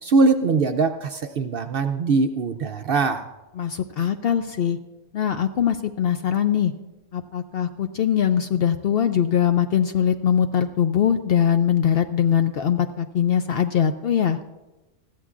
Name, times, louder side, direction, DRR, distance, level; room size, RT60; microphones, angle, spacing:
voice 1, 0.0-3.3, right 4 dB, 60° right, 7 dB, 0.6 m, -21 dB
voice 2, 3.6-4.8 5.1-6.7 7.1-14.4, left 9 dB, 65° left, 8 dB, 0.6 m, -22 dB
20.5 x 14.5 x 2.5 m, 1.1 s
omnidirectional pair, 1.4 m